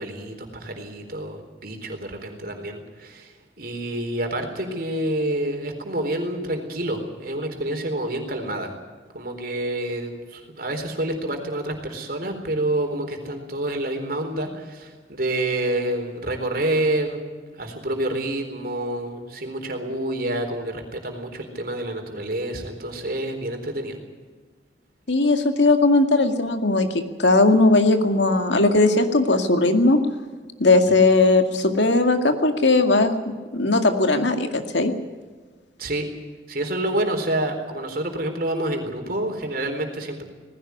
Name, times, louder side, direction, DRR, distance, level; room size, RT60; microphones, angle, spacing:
voice 1, 0.0-8.7 9.1-17.2 17.5-24.0 30.9-31.0 35.8-36.1 36.5-40.2, right 1 dB, 50° right, 4 dB, 4.1 m, -28 dB
voice 2, 25.1-30.0 30.6-34.9, left 2 dB, 75° left, 6 dB, 2.1 m, -18 dB
19.5 x 16.0 x 9.6 m, 1.4 s
head